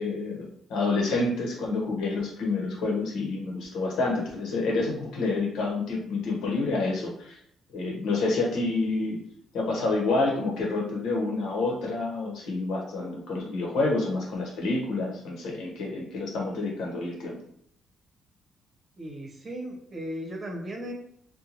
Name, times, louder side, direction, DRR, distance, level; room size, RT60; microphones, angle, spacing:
voice 1, 0.0-7.4 7.7-9.2 9.5-17.4, left 3 dB, 85° left, -2 dB, 0.9 m, -28 dB
voice 2, 19.0-20.9, equal, 40° right, 1 dB, 0.8 m, -36 dB
2.9 x 2.2 x 2.5 m, 0.71 s
cardioid pair, 90°, 0 cm